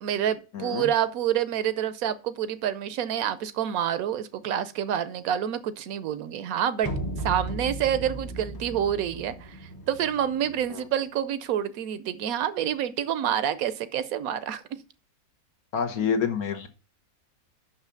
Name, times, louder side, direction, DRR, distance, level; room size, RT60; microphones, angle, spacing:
voice 1, 0.0-6.9 7.2-9.6 9.9-14.8 16.0-16.1, right 10 dB, 75° right, 1.0 m, -28 dB
voice 2, 0.5-0.9 10.7-10.9 15.7-16.7, left 7 dB, 75° left, 1.6 m, -28 dB
sound 1, 6.8-10.9, right 2 dB, 20° left, 0.6 m, -36 dB
5.9 x 5.7 x 6.8 m
omnidirectional pair, 1.6 m